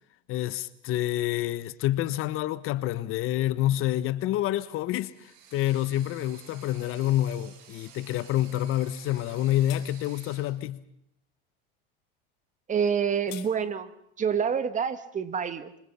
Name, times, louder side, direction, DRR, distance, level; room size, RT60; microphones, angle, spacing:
voice 1, 0.3-5.1 5.5-10.8, left 14 dB, 45° left, 1.3 m, -27 dB
sound 1, 5.0-10.6, right 8 dB, 60° right, 5.8 m, -52 dB
sound 2, 9.2-9.3 9.7-9.9 12.9-13.5, left 18 dB, 75° left, 1.9 m, -44 dB
voice 2, 12.7-13.9 14.2-15.7, right 7 dB, 25° right, 1.8 m, -27 dB
26.0 x 24.5 x 5.7 m
supercardioid pair, 115°, 29 cm